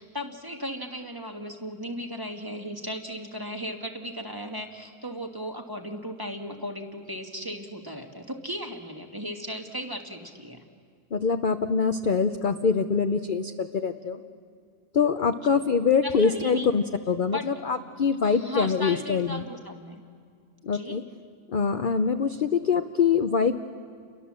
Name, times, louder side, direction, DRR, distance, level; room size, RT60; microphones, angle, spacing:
voice 1, 0.0-10.6 15.4-15.7 16.0-16.7 17.3-17.5 18.2-20.0 20.7-21.1, equal, 15° right, 3 dB, 1.5 m, -36 dB
voice 2, 11.1-14.2 14.9-19.4 20.6-21.0 21.5-23.6, left 5 dB, 45° left, 7 dB, 0.6 m, -24 dB
29.5 x 22.5 x 7.5 m, 2.1 s
omnidirectional pair, 1.7 m